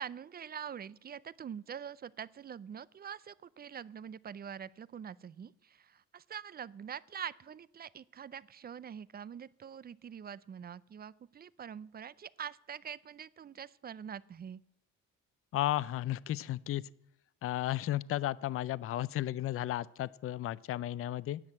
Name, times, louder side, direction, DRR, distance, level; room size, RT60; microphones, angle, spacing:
voice 1, 0.0-14.6, right 8 dB, 30° right, 21 dB, 0.4 m, -44 dB
voice 2, 15.5-16.8 17.4-21.4, left 13 dB, 50° left, 20 dB, 0.4 m, -34 dB
10.5 x 8.0 x 8.6 m, 0.82 s
cardioid pair, 90°, 30 cm